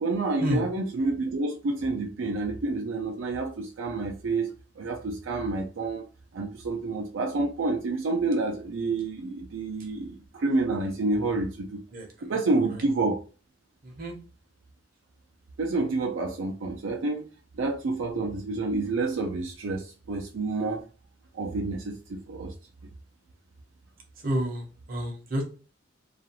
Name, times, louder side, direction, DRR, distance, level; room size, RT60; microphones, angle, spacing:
voice 1, 0.0-4.5 4.8-6.0 6.3-11.8 12.2-13.2 15.6-17.3 17.5-20.8 21.3-22.5, right 3 dB, 75° right, 1 dB, 0.4 m, -28 dB
voice 2, 13.8-14.1 24.2-25.4, equal, 45° right, 1 dB, 0.7 m, -29 dB
2.4 x 2.3 x 2.8 m, 0.36 s
head